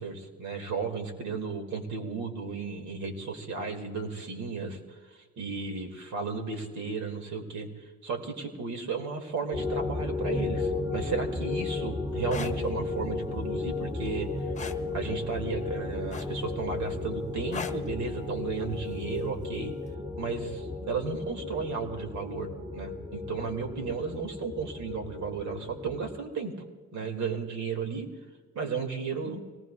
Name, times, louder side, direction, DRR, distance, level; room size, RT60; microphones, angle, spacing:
voice 1, 0.0-4.8 5.1-14.3 14.9-19.7 20.2-26.5 26.9-28.1 28.5-29.4, right 5 dB, 70° right, 4 dB, 2.9 m, -34 dB
sound 1, 9.5-26.2, left 3 dB, 10° right, 1.6 m, -34 dB
sound 2, 12.2-12.5 14.5-14.8 16.1-16.5 17.5-17.9 19.3-19.5, left 5 dB, 25° left, 1.0 m, -37 dB
25.0 x 19.0 x 2.6 m, 1.5 s
cardioid pair, 90°, 30 cm